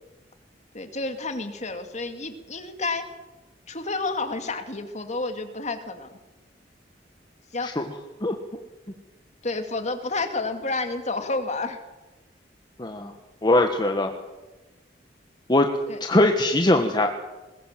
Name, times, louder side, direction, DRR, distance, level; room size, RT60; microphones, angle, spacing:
voice 1, 0.7-3.1 3.7-6.2 7.5-7.8 9.4-11.8 15.9-16.0, left 3 dB, 40° left, 7 dB, 2.3 m, -30 dB
voice 2, 12.8-13.1 13.4-14.1 15.5-15.7 16.0-17.1, left 1 dB, 25° left, 4 dB, 1.5 m, -21 dB
21.5 x 20.5 x 7.5 m, 1.1 s
head